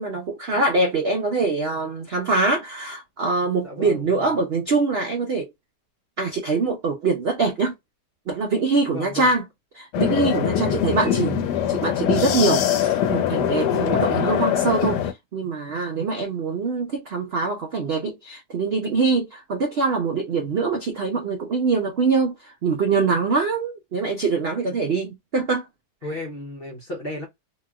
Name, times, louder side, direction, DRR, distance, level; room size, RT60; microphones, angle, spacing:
voice 1, 0.0-5.5 6.2-7.7 8.3-9.4 9.7-11.4 11.7-25.7, right 4 dB, 70° right, 0.5 m, -24 dB
voice 2, 3.6-4.1 8.9-9.3 10.7-11.7 26.0-27.3, left 1 dB, 50° left, 0.7 m, -33 dB
sound 1, 9.9-15.1, left 10 dB, 80° left, 1.2 m, -22 dB
2.9 x 2.8 x 2.2 m
omnidirectional pair, 1.8 m